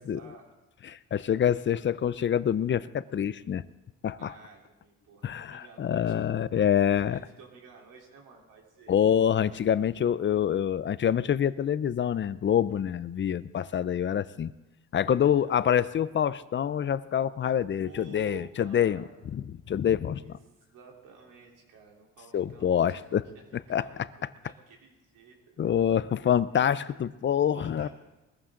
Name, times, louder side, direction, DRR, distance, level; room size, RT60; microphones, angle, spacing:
voice 1, 0.1-0.5 4.2-6.4 7.1-8.9 15.5-15.6 17.8-19.2 20.2-23.0 23.3-23.5 23.8-25.6 26.6-27.2 27.5-27.9, right 5 dB, 80° right, -1 dB, 3.7 m, -52 dB
voice 2, 0.8-3.6 4.0-4.3 5.2-7.2 8.9-14.5 14.9-20.2 22.3-23.3 23.7-23.9 25.6-27.9, left 9 dB, 40° left, 17 dB, 0.5 m, -26 dB
21.0 x 15.0 x 3.8 m, 1.0 s
cardioid pair, 105°, 31 cm